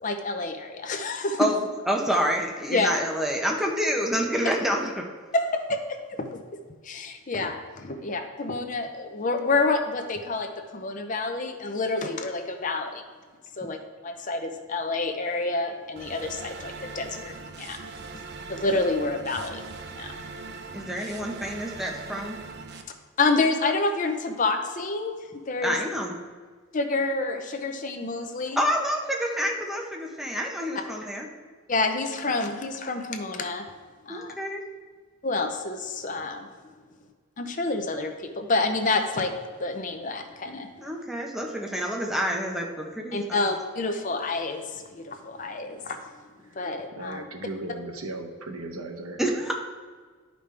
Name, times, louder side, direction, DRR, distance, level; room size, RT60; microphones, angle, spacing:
voice 1, 0.0-1.5 2.7-3.0 5.3-6.4 6.8-13.0 13.6-13.8 14.0-17.8 18.1-18.2 18.5-19.6 19.9-20.1 23.2-25.8 26.7-28.7 31.7-33.6 34.1-34.3 35.2-36.5 37.4-39.3 39.6-40.7 43.1-46.0 46.6-47.2, left 3 dB, 35° left, 6 dB, 0.6 m, -28 dB
voice 2, 1.9-5.1 20.7-22.4 25.6-26.2 28.6-31.3 34.1-34.6 40.8-43.4 49.2-49.5, equal, ahead, 0 dB, 0.8 m, -28 dB
sound 1, 16.0-22.8, right 4 dB, 50° right, 0.6 m, -40 dB
voice 3, 47.0-49.2, right 2 dB, 80° right, 4 dB, 0.8 m, -36 dB
11.0 x 5.2 x 3.3 m, 1.5 s
head